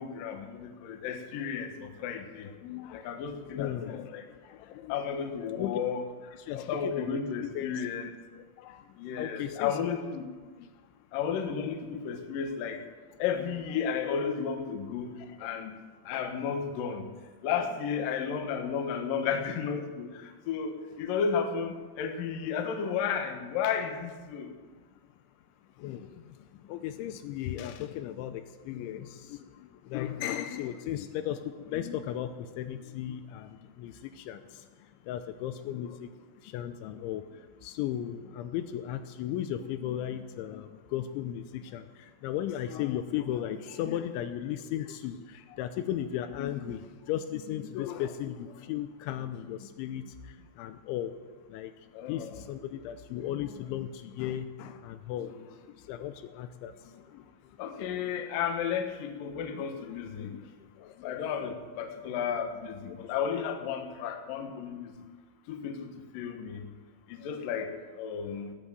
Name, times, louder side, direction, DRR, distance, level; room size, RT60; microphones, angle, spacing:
voice 1, 0.0-2.5 2.9-4.3 4.9-6.0 6.5-8.1 9.0-10.3 11.1-12.8 13.2-15.7 16.1-17.1 17.4-24.5 51.9-52.4 55.9-56.0 57.6-60.3 61.0-64.9 65.5-66.6 67.1-68.5, left 7 dB, 65° left, 5 dB, 2.3 m, -33 dB
voice 2, 2.4-3.1 3.6-5.0 5.4-5.8 6.4-7.1 7.4-7.9 8.6-9.7 10.6-10.7 15.2-15.4 25.8-51.2 51.5-57.3 57.8-58.1 59.5-59.6 60.2-60.4 60.8-61.3 62.8-63.2, left 11 dB, 85° left, 9 dB, 3.0 m, -36 dB
17.0 x 9.8 x 7.7 m, 1.4 s
omnidirectional pair, 5.6 m